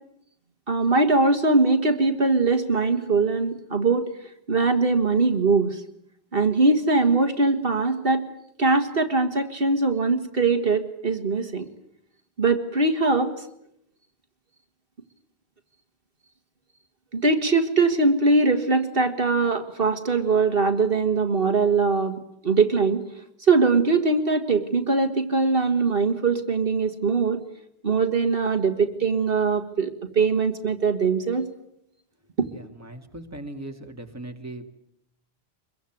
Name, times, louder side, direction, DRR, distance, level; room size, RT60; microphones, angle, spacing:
voice 1, 0.7-4.1 4.5-5.8 6.3-8.2 8.6-11.7 12.4-13.3 17.1-23.0 23.5-27.4 27.8-31.5, right 3 dB, 65° right, 6 dB, 2.0 m, -21 dB
voice 2, 32.5-34.6, right 1 dB, 15° right, 4 dB, 2.3 m, -39 dB
25.0 x 22.5 x 9.3 m, 0.77 s
omnidirectional pair, 1.1 m